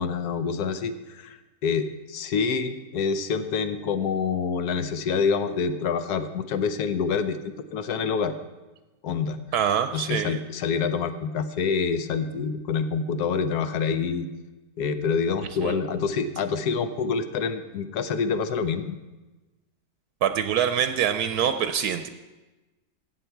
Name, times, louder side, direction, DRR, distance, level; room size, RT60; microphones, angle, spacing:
voice 1, 0.0-7.4 7.7-8.3 9.0-9.4 9.9-14.3 14.8-19.0, left 5 dB, 80° left, 9 dB, 1.3 m, -27 dB
voice 2, 9.5-10.4 15.6-15.7 20.2-22.1, right 9 dB, 80° right, 9 dB, 1.1 m, -25 dB
15.0 x 7.8 x 4.5 m, 1.1 s
omnidirectional pair, 1.7 m